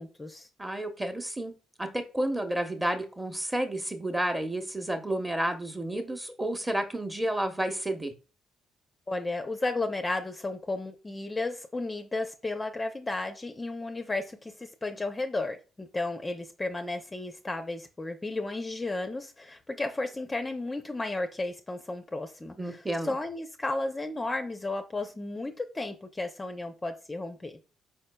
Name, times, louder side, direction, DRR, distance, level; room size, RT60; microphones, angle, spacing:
voice 1, 0.0-0.5 9.1-27.6, left 2 dB, 20° left, 0.5 m, -33 dB
voice 2, 0.6-1.5 1.8-8.1 22.6-23.1, right 1 dB, 15° right, 0.9 m, -31 dB
4.6 x 4.4 x 2.2 m
cardioid pair, 90°, 0 cm